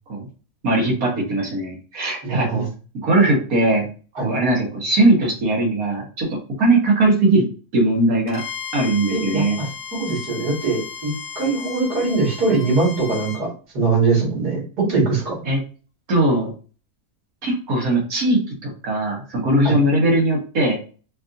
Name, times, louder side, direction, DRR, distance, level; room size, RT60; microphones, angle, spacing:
voice 1, 0.6-2.7 3.0-3.9 4.2-7.5 7.7-8.4 8.7-9.6 15.5-15.6 16.1-16.5 17.4-20.8, right 2 dB, 65° right, -2 dB, 1.8 m, -19 dB
voice 2, 2.2-2.7 4.2-4.3 9.1-9.7 9.9-13.5 13.7-15.3 19.6-19.7, right 3 dB, 80° right, -4 dB, 2.6 m, -22 dB
Bowed string instrument, 8.3-13.5, left 6 dB, 70° left, 1.2 m, -35 dB
5.1 x 2.6 x 2.6 m, 0.37 s
omnidirectional pair, 1.7 m